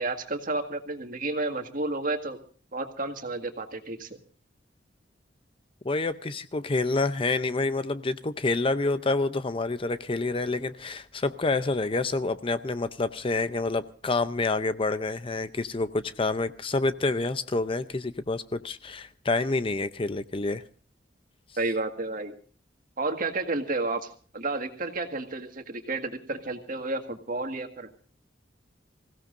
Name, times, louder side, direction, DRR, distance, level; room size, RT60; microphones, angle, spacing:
voice 1, 0.0-2.4 2.7-4.1 21.6-22.3 23.0-24.1 24.3-27.9, right 2 dB, 50° right, 1.8 m, -31 dB
voice 2, 5.8-20.6, left 3 dB, 30° left, 0.6 m, -28 dB
26.5 x 16.5 x 2.6 m
head